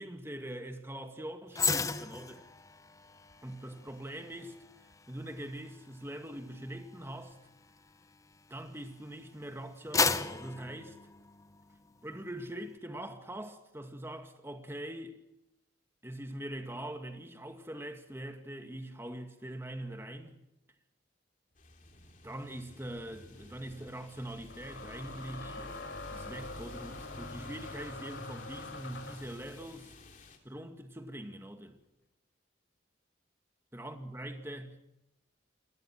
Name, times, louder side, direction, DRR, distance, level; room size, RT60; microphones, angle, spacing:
voice 1, 0.0-2.4 3.4-4.5 5.1-7.4 8.5-11.0 12.0-15.2 16.0-20.4 22.2-29.9 30.4-31.8 33.7-34.8, right 1 dB, 15° right, 2.2 m, -43 dB
sound 1, 1.5-8.9 9.4-11.8 12.1-12.3, left 4 dB, 20° left, 0.9 m, -36 dB
sound 2, 21.6-30.4, left 2 dB, 45° left, 3.3 m, -51 dB
sound 3, 22.5-22.6 24.5-29.3, left 2 dB, 70° left, 3.9 m, -44 dB
28.5 x 21.5 x 6.2 m
head